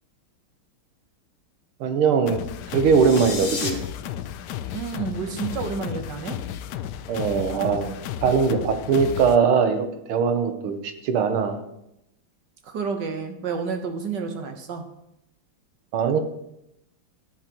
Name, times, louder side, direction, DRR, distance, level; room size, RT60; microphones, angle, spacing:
voice 1, 1.8-2.4 2.7-3.8 7.1-8.0 8.2-11.6 15.9-16.2, right 6 dB, 80° right, 7 dB, 1.9 m, -21 dB
sound 1, 2.3-9.4, left 10 dB, 80° left, 0.9 m, -33 dB
sound 2, 2.8-3.7, left 4 dB, 45° left, 1.1 m, -32 dB
voice 2, 4.7-6.4 12.6-14.9, right 5 dB, 60° right, 5 dB, 1.6 m, -30 dB
15.0 x 9.8 x 3.0 m, 0.84 s
omnidirectional pair, 2.3 m